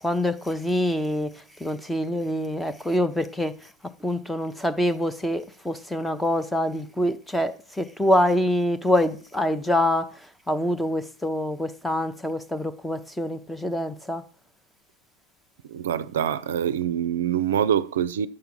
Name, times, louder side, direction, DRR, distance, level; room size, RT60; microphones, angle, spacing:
voice 1, 0.0-14.2, left 1 dB, 5° left, 0.7 m, -25 dB
voice 2, 15.7-18.3, right 9 dB, 60° right, 0.5 m, -25 dB
7.6 x 5.7 x 7.2 m
figure-of-eight pair, 90°, 0 cm